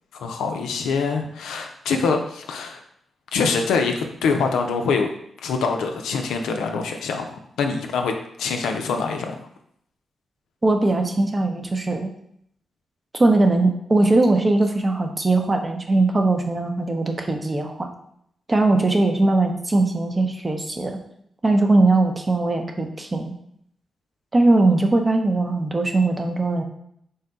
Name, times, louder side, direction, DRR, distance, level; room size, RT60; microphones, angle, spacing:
voice 1, 0.1-2.8 3.3-5.1 5.4-7.2 7.6-8.1 8.4-9.4, left 5 dB, 85° left, 4 dB, 0.4 m, -24 dB
voice 2, 10.6-12.1 13.2-17.9 18.5-21.0 21.4-23.3 24.3-26.6, right 2 dB, 35° right, 4 dB, 0.7 m, -20 dB
3.9 x 2.2 x 3.9 m, 0.70 s
supercardioid pair, 40°, 0 cm